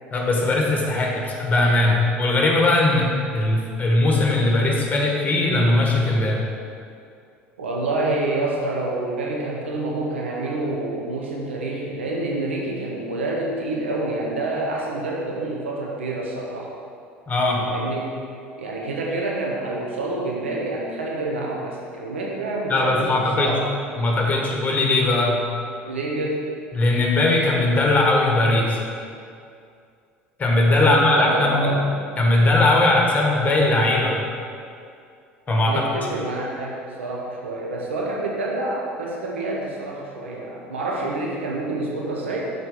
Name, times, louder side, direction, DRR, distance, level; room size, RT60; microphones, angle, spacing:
voice 1, 0.1-6.4 17.3-17.7 22.7-23.6 24.0-25.4 26.7-28.8 30.4-31.7 32.2-34.2 35.5-35.8, left 2 dB, 25° left, -1 dB, 1.5 m, -19 dB
voice 2, 7.6-16.7 17.6-18.1 18.6-23.7 25.8-26.4 30.8-31.9 35.6-42.4, right 2 dB, 80° right, -3 dB, 0.8 m, -27 dB
6.5 x 4.5 x 5.1 m, 2.4 s
figure-of-eight pair, 65°, 6 cm